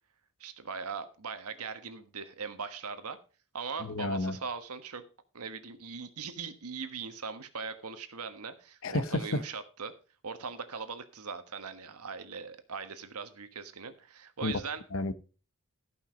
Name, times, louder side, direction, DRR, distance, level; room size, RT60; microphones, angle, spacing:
voice 1, 0.4-3.2 3.5-5.0 5.3-9.9 10.2-14.8, right 5 dB, 85° right, 1.3 m, -40 dB
voice 2, 3.8-4.4 8.8-9.4 14.4-14.5 14.9-15.1, left 2 dB, 65° left, 0.9 m, -31 dB
14.0 x 5.7 x 5.1 m
head